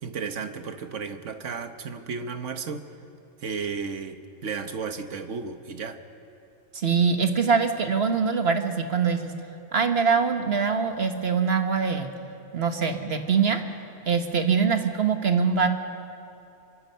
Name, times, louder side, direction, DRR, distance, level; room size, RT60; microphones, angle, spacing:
voice 1, 0.0-2.9 3.4-6.0, right 5 dB, 70° right, 8 dB, 1.4 m, -33 dB
voice 2, 6.7-9.3 9.7-12.1 12.5-13.6 14.1-15.7, right 5 dB, 55° right, 6 dB, 1.5 m, -23 dB
26.0 x 24.0 x 5.7 m, 2.7 s
omnidirectional pair, 1.3 m